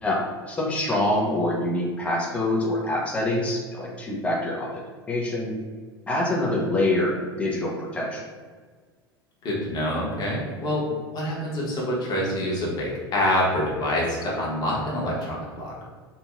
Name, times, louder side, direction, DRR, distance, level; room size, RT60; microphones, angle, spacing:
voice 1, 0.0-4.8 5.1-5.5 6.1-8.2, left 1 dB, 10° left, -3 dB, 0.5 m, -25 dB
voice 2, 9.4-10.9 11.1-15.7, left 1 dB, 30° left, -4 dB, 1.0 m, -26 dB
3.0 x 2.5 x 2.4 m, 1.5 s
figure-of-eight pair, 80°, 13 cm